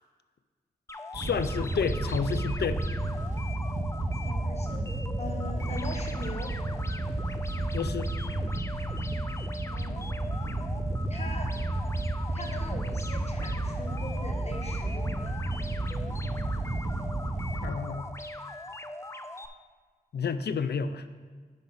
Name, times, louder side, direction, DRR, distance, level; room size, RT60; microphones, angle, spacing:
sound 1, 0.9-19.5, left 2 dB, 15° left, 0.4 m, -41 dB
voice 1, 1.1-2.8 7.7-8.1 17.6-18.1 20.1-21.0, left 6 dB, 90° left, 11 dB, 0.4 m, -30 dB
Wind / Boat Water vehicle, 1.1-17.7, right 2 dB, 45° right, 1.0 m, -32 dB
voice 2, 4.2-6.6 9.7-10.1 11.1-11.5 12.3-15.4, left 2 dB, 40° left, 3 dB, 1.2 m, -41 dB
10.5 x 5.7 x 4.0 m, 1.5 s
wide cardioid pair, 75°, 17 cm